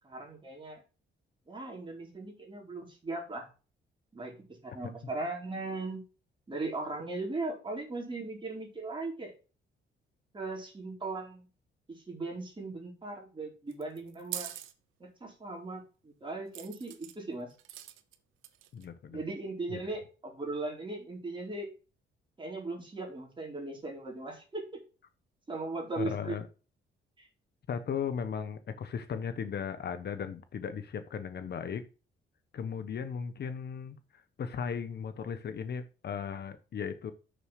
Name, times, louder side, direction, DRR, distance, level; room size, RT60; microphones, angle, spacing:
voice 1, 0.0-0.8 1.5-3.5 4.1-4.3 4.6-6.0 6.5-9.3 10.3-11.5 11.9-14.5 15.0-17.5 19.1-21.7 22.4-24.8 25.5-26.3 27.2-27.3, right 2 dB, 25° right, -1 dB, 4.5 m, -38 dB
sound 1, 13.7-14.7 16.5-17.2 17.6-18.1 18.4-18.8, right 12 dB, 85° right, 0.9 m, -42 dB
voice 2, 18.7-19.2 19.7-19.8 26.0-26.5 27.7-31.8 32.5-37.1, left 7 dB, 55° left, 10 dB, 1.3 m, -36 dB
6.8 x 6.4 x 5.9 m, 0.34 s
cardioid pair, 90°, 20 cm